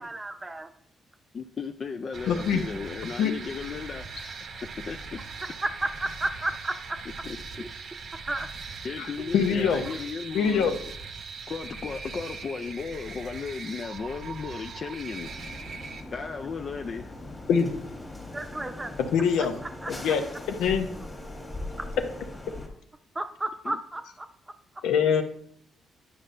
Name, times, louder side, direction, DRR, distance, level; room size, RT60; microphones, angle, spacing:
voice 1, 0.0-0.7 6.0-7.0 7.6-7.7 8.3-8.5 9.4-9.7 18.3-18.9 19.8-20.1 23.1-24.0, right 2 dB, 20° right, 7 dB, 0.7 m, -33 dB
voice 2, 1.3-4.3 4.9-5.2 7.2-7.6 8.8-10.8 11.5-15.3 16.1-17.1 23.6-23.8, left 5 dB, 45° left, 6 dB, 0.4 m, -35 dB
sound 1, 2.1-16.0, right 4 dB, 55° right, 0.8 m, -40 dB
voice 3, 2.3-2.6 3.2-3.3 9.0-9.1 9.3-9.8 10.3-10.7 17.5-17.7 19.1-19.6 19.9-20.2 20.5-20.9 24.8-25.2, left 7 dB, 85° left, 6 dB, 0.7 m, -23 dB
sound 2, 15.2-22.7, left 1 dB, 25° left, 1.6 m, -40 dB
9.6 x 5.4 x 2.5 m, 0.66 s
cardioid pair, 90°, 0 cm